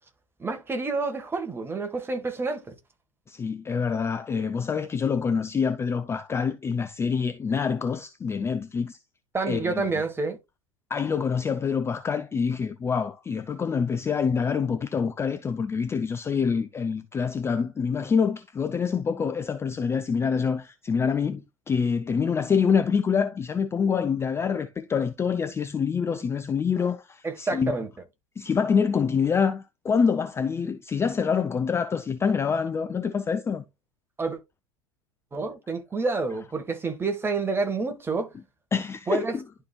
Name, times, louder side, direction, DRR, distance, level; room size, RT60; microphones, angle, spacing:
voice 1, 0.4-2.7 9.3-10.4 27.2-27.9 34.2-34.4 35.3-38.3 39.1-39.4, right 3 dB, 15° right, 1.6 m, -28 dB
voice 2, 3.3-9.0 9.5-9.8 10.9-21.4 21.7-27.8 28.4-33.6 38.7-39.4, left 6 dB, 15° left, 0.5 m, -26 dB
11.5 x 4.5 x 2.4 m
figure-of-eight pair, 85°, 17 cm